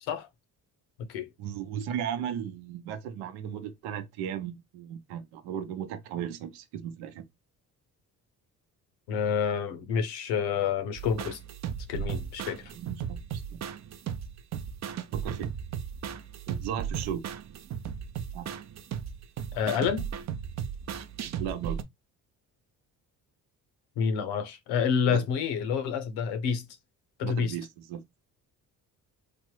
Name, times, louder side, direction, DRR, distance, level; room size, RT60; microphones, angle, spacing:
voice 1, 1.4-7.3 12.8-13.6 15.1-15.5 16.5-17.3 18.3-18.5 21.4-21.8 25.1-25.3 27.2-28.1, right 9 dB, 85° right, 0.7 m, -36 dB
voice 2, 9.1-11.4 11.9-12.7 19.5-20.1 24.0-26.7 27.2-27.5, left 7 dB, 85° left, 0.8 m, -28 dB
sound 1, 11.0-21.8, right 8 dB, 45° right, 0.5 m, -36 dB
3.3 x 2.1 x 3.0 m
supercardioid pair, 70°, 38 cm